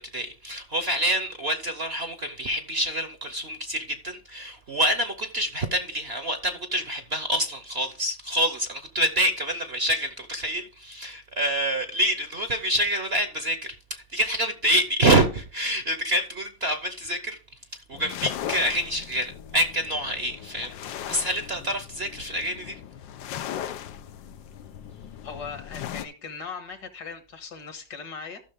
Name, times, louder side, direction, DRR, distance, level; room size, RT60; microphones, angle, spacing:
voice 1, 0.1-17.4 17.9-22.8, right 1 dB, 45° right, 0.9 m, -27 dB
sound 1, 17.9-26.1, left 10 dB, 85° left, 1.4 m, -38 dB
voice 2, 25.2-28.4, left 5 dB, 65° left, 1.9 m, -39 dB
14.5 x 6.3 x 3.6 m
omnidirectional pair, 2.0 m